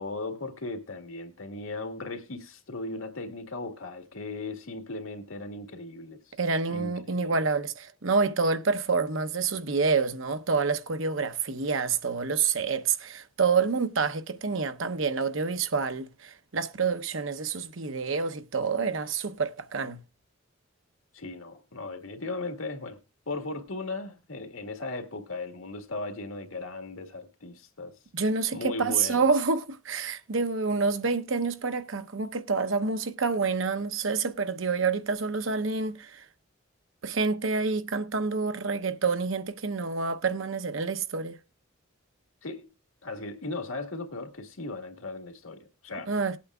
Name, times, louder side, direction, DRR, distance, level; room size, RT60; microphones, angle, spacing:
voice 1, 0.0-6.2 6.7-7.4 21.1-23.0 23.3-27.9 28.5-29.2 42.4-42.7 43.0-46.1, left 2 dB, 85° left, 1.7 m, -37 dB
voice 2, 6.4-20.0 28.1-36.2 37.0-41.4 46.1-46.4, right 4 dB, 70° right, 0.9 m, -28 dB
19.0 x 8.5 x 2.3 m
head